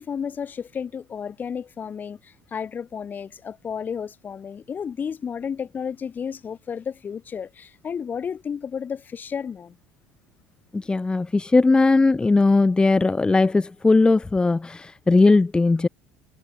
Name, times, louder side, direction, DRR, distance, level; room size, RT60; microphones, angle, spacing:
voice 1, 0.0-9.8, left 7 dB, 35° left, 3.6 m, -32 dB
voice 2, 10.7-15.9, left 3 dB, 15° left, 1.9 m, -18 dB
hypercardioid pair, 70°, 5 cm